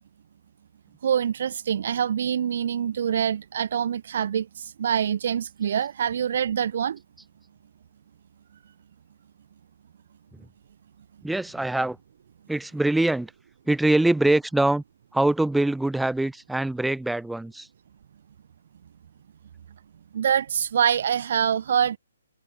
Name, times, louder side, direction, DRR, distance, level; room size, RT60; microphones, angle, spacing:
voice 1, 1.0-7.0 20.1-22.0, right 8 dB, 55° right, 0.6 m, -25 dB
voice 2, 11.2-12.0 12.5-13.3 13.7-14.8 15.1-17.7, right 2 dB, 5° right, 2.0 m, -23 dB
hypercardioid pair, 140°, 0 cm